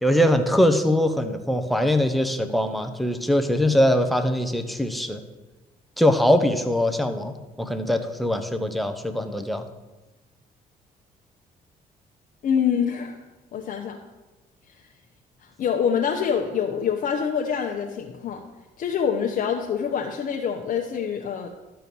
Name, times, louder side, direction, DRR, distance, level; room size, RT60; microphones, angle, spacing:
voice 1, 0.0-5.2 6.0-9.7, left 1 dB, ahead, 6 dB, 0.9 m, -22 dB
voice 2, 12.4-13.2 13.5-14.0 14.7-14.8 15.6-18.4 18.8-21.5, left 7 dB, 60° left, 1 dB, 0.9 m, -25 dB
12.0 x 4.5 x 7.0 m, 1.2 s
cardioid pair, 95°, 16 cm